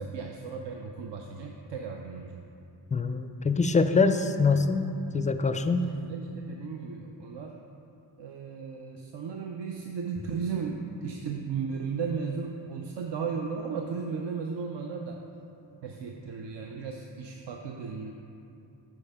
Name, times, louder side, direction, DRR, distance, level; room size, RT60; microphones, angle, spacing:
voice 1, 0.0-2.4 6.1-7.6 8.2-15.2 15.8-18.1, right 5 dB, 65° right, 2 dB, 0.6 m, -35 dB
voice 2, 2.9-4.9 5.1-5.9, left 4 dB, 20° left, 9 dB, 0.3 m, -24 dB
10.5 x 4.5 x 3.5 m, 2.7 s
cardioid pair, 55°, 45 cm